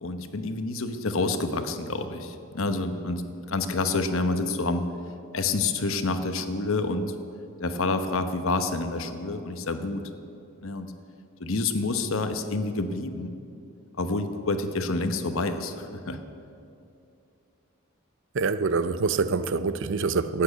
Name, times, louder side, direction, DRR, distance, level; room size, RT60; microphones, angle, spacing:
voice 1, 0.0-3.2 3.5-4.9 5.3-7.1 7.6-10.0 10.6-10.9 11.4-13.4 14.0-16.2, left 3 dB, 65° left, 1.0 m, -28 dB
voice 2, 18.3-20.4, right 4 dB, 60° right, 0.6 m, -25 dB
13.5 x 8.7 x 8.3 m
head